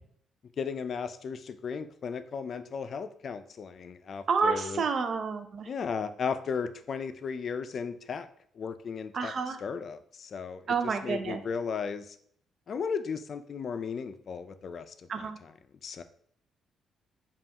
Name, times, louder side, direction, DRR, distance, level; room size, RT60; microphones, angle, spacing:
voice 1, 0.6-4.8 5.7-8.3 8.6-10.7 11.0-12.2 12.7-15.5 15.8-16.0, left 6 dB, 50° left, 11 dB, 0.4 m, -35 dB
voice 2, 4.3-5.7 9.1-9.6 10.7-11.4 15.1-15.4, right 5 dB, 55° right, 7 dB, 0.4 m, -29 dB
5.3 x 2.4 x 2.9 m, 0.63 s
cardioid pair, 90°, 0 cm